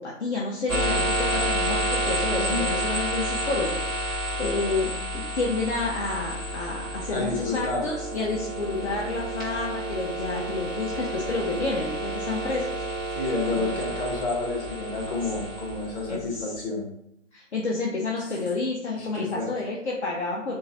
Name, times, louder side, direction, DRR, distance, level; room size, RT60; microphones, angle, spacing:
voice 1, 0.0-12.8 13.5-13.9 16.1-16.6 17.3-20.6, left 3 dB, 60° left, -2 dB, 0.8 m, -30 dB
sound 1, 0.7-16.4, right 1 dB, ahead, 0.6 m, -30 dB
voice 2, 2.3-2.7 7.1-7.8 13.1-16.9 19.0-19.5, left 3 dB, 45° left, -1 dB, 1.2 m, -30 dB
3.8 x 2.6 x 4.0 m, 0.78 s
figure-of-eight pair, 135°, 37 cm